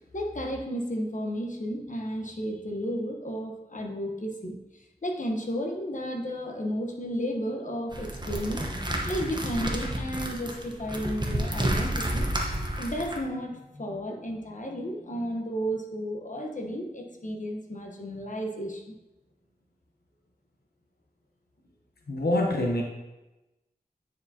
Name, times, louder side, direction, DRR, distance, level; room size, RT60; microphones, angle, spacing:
voice 1, 0.1-8.7 9.1-12.3 12.8-18.9, equal, 50° left, 1 dB, 1.0 m, -33 dB
sound 1, 7.9-13.2, right 1 dB, 25° right, 1.0 m, -30 dB
voice 2, 22.1-22.8, left 1 dB, 75° left, -1 dB, 0.8 m, -25 dB
9.5 x 4.7 x 2.8 m, 1.0 s
wide cardioid pair, 55°, 16 cm